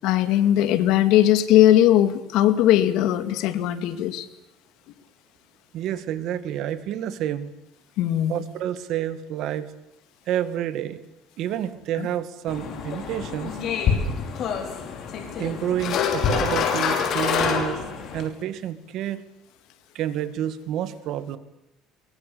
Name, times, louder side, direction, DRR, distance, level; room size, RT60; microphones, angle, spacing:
voice 1, 0.0-4.3 8.0-8.4 12.0-12.1, left 12 dB, 70° left, 12 dB, 2.3 m, -19 dB
voice 2, 5.7-7.5 8.3-9.7 10.3-11.0 11.4-13.6 15.4-17.8 18.1-19.2 19.9-21.4, right 11 dB, 55° right, 13 dB, 2.2 m, -29 dB
sound 1, 12.5-18.3, left 6 dB, 45° left, 5.5 m, -26 dB
23.5 x 22.0 x 8.6 m, 0.88 s
cardioid pair, 155°, 0 cm